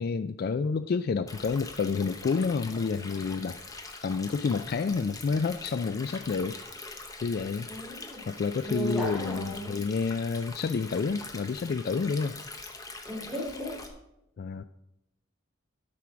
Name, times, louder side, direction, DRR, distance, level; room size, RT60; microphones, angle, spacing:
voice 1, 0.0-3.6 4.0-6.6 7.2-7.7 8.3-12.4 14.4-14.6, left 5 dB, 50° left, 11 dB, 0.3 m, -29 dB
Stream, 1.3-13.9, left 3 dB, 15° left, 0.9 m, -43 dB
voice 2, 7.7-8.2 8.6-9.8 13.0-13.8, equal, ahead, -6 dB, 3.4 m, -35 dB
12.0 x 4.7 x 5.9 m, 0.85 s
head